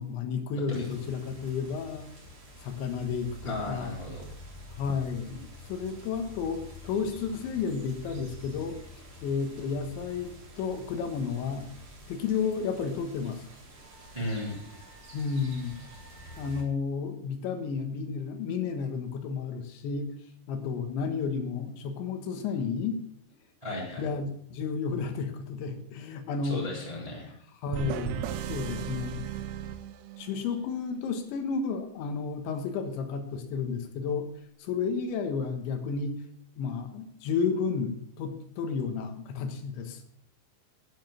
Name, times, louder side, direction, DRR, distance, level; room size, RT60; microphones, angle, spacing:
voice 1, 0.0-2.1 2.6-3.9 4.8-8.8 9.2-10.3 10.6-11.7 12.1-13.5 15.1-15.8 16.4-20.1 20.5-23.0 24.0-26.6 27.6-29.3 30.2-34.3 34.6-36.2 36.6-40.0, left 5 dB, 75° left, 7 dB, 3.5 m, -32 dB
sound 1, 0.7-16.6, left 1 dB, 30° right, 3.2 m, -48 dB
voice 2, 3.4-4.2 14.1-14.6 23.6-24.1 26.4-27.4, left 1 dB, 10° right, -4 dB, 2.8 m, -35 dB
sound 2, 27.7-30.5, right 10 dB, 80° right, 3.0 m, -36 dB
12.0 x 9.3 x 6.6 m, 0.66 s
omnidirectional pair, 5.7 m